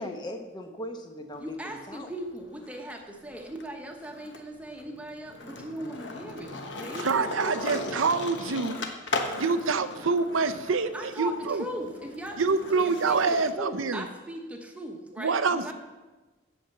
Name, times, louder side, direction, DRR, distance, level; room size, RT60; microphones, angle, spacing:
voice 1, 0.0-2.1, left 1 dB, 20° left, 5 dB, 0.9 m, -39 dB
Skateboard, 1.3-2.9 3.3-13.5, left 2 dB, 65° left, 1.1 m, -38 dB
voice 2, 1.4-7.9 10.9-15.7, right 1 dB, 5° right, 2 dB, 1.0 m, -39 dB
voice 3, 7.0-8.8 9.4-11.6 12.4-14.0 15.2-15.7, right 4 dB, 85° right, 10 dB, 0.7 m, -26 dB
8.6 x 7.0 x 7.9 m, 1.2 s
head